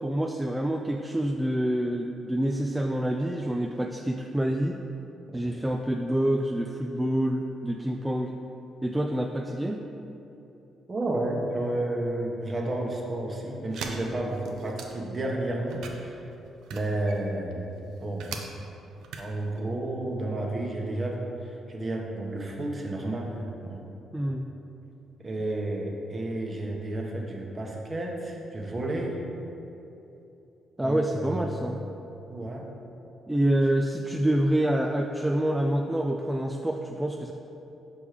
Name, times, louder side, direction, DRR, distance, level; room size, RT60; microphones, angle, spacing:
voice 1, 0.0-4.8 5.3-8.3 8.8-9.8 24.1-24.5 30.8-31.8 33.3-37.3, right 1 dB, 10° right, 2 dB, 0.3 m, -27 dB
voice 2, 10.9-16.2 16.7-17.6 18.0-18.3 19.2-21.2 21.7-23.8 25.2-29.2 30.8-31.3 32.3-32.6, right 1 dB, 35° right, 0 dB, 1.1 m, -31 dB
sound 1, 13.7-15.2 15.6-18.4 18.9-19.6, right 5 dB, 80° right, 0.6 m, -40 dB
5.2 x 5.0 x 4.9 m, 2.9 s
cardioid pair, 90°, 0 cm